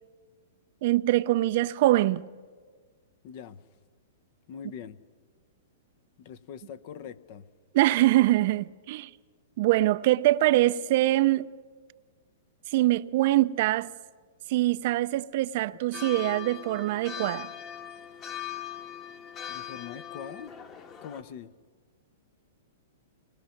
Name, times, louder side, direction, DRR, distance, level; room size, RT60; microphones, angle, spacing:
voice 1, 0.8-2.2 7.7-9.1 9.6-11.5 12.7-13.9 14.5-17.5, right 16 dB, 55° right, 0.5 m, -23 dB
voice 2, 3.2-3.6 4.5-5.0 6.2-7.5 19.5-20.5 21.0-21.5, left 8 dB, 50° left, 1.0 m, -42 dB
sound 1, 15.9-21.2, left 10 dB, 30° left, 1.7 m, -40 dB
25.0 x 20.0 x 5.9 m
hypercardioid pair, 125°, 0 cm